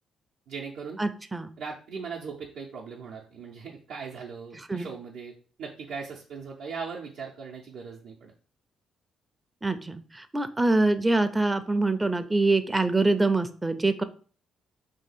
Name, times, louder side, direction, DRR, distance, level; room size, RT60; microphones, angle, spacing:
voice 1, 0.5-1.0 1.6-8.3, right 5 dB, 75° right, -4 dB, 0.6 m, -39 dB
voice 2, 1.0-1.5 4.7-4.9 9.6-14.0, right 2 dB, 15° right, 10 dB, 0.4 m, -25 dB
2.8 x 2.7 x 4.1 m, 0.41 s
cardioid pair, 90°, 0 cm